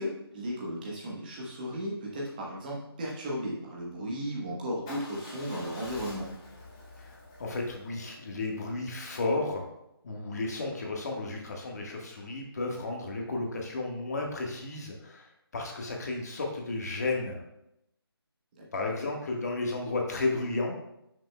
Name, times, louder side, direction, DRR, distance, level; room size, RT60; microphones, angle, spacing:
voice 1, 0.0-6.3 18.6-18.7, equal, 20° right, -4 dB, 1.1 m, -35 dB
Motorcycle / Engine starting / Idling, 4.9-9.0, left 1 dB, 10° left, 0.8 m, -47 dB
voice 2, 7.4-9.6 10.0-15.3 15.5-17.4 18.7-20.8, left 2 dB, 40° left, 0 dB, 1.4 m, -33 dB
10.0 x 6.2 x 2.2 m, 0.82 s
figure-of-eight pair, 170°, 13 cm